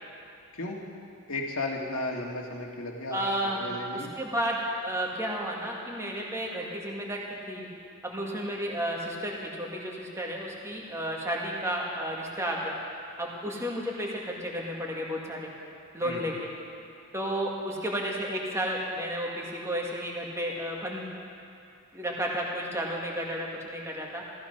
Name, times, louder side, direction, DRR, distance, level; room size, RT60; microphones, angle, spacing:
voice 1, 1.3-4.1 16.0-16.3, left 2 dB, 85° left, 0 dB, 2.0 m, -34 dB
voice 2, 3.1-3.7 3.9-7.7 8.0-12.8 13.2-15.5 15.9-16.5 17.1-21.1 21.9-24.2, equal, 15° right, -2 dB, 2.0 m, -32 dB
14.5 x 14.5 x 5.6 m, 2.6 s
head